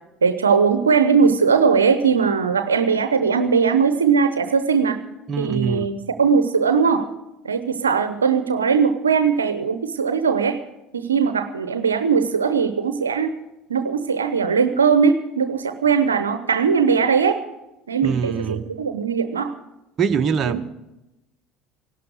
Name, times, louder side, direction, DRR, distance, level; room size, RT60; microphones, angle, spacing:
voice 1, 0.2-5.0 5.4-7.1 7.4-10.6 10.9-13.4 13.7-17.4 17.9-19.5 20.4-20.6, right 6 dB, 90° right, 10 dB, 0.9 m, -19 dB
voice 2, 5.3-5.9 18.0-18.6 20.0-20.7, right 6 dB, 40° right, 7 dB, 1.1 m, -23 dB
17.0 x 12.0 x 6.6 m, 0.94 s
hypercardioid pair, 65°, 0 cm